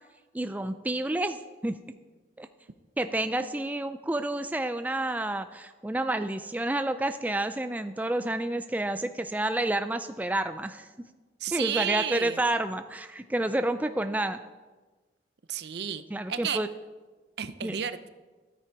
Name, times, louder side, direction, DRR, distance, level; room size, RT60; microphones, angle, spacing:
voice 1, 0.3-1.8 2.4-2.5 3.0-10.9 11.5-14.4 16.1-16.7 17.6-17.8, right 1 dB, 10° right, 9 dB, 0.3 m, -29 dB
voice 2, 11.4-12.4 15.5-16.0 16.3-16.6 17.4-18.1, right 9 dB, 65° right, 13 dB, 0.5 m, -32 dB
13.0 x 9.5 x 4.6 m, 1.3 s
head